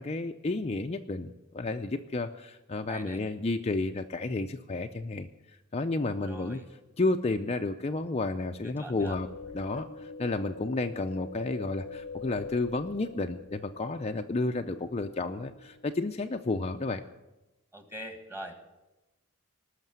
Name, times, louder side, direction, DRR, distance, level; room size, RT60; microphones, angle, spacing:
voice 1, 0.0-5.3 5.7-6.6 7.0-9.3 9.5-17.0, left 2 dB, 30° left, 5 dB, 0.5 m, -31 dB
voice 2, 2.9-3.2 6.2-6.7 8.6-9.2 17.7-18.6, right 1 dB, 10° right, 6 dB, 1.7 m, -42 dB
sound 1, 8.8-16.2, left 4 dB, 80° left, 0.8 m, -44 dB
19.5 x 6.5 x 9.3 m, 1.0 s
head